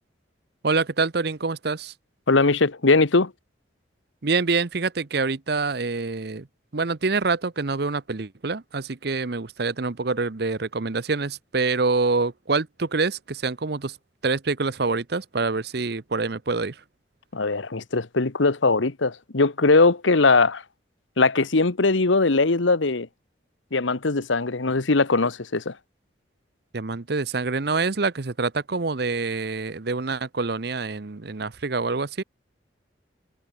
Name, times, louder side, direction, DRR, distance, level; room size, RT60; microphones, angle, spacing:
voice 1, 0.6-1.9 4.2-6.5 6.7-14.0 14.2-16.8 26.7-32.2, right 4 dB, 55° right, 0.8 m, -26 dB
voice 2, 2.3-3.3 17.3-20.6 21.2-23.1 23.7-25.7, left 3 dB, 75° left, 1.2 m, -20 dB
head